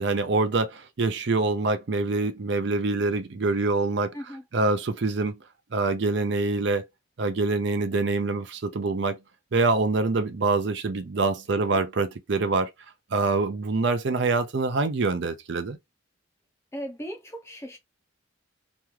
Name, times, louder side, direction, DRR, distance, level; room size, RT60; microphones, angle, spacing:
voice 1, 0.0-4.1 4.5-5.4 5.7-6.8 7.2-9.2 9.5-12.7 13.1-15.8, right 3 dB, 60° right, 0.5 m, -25 dB
voice 2, 4.1-4.5 11.5-11.8 16.7-17.8, equal, 15° left, 0.5 m, -38 dB
3.0 x 2.3 x 3.1 m
head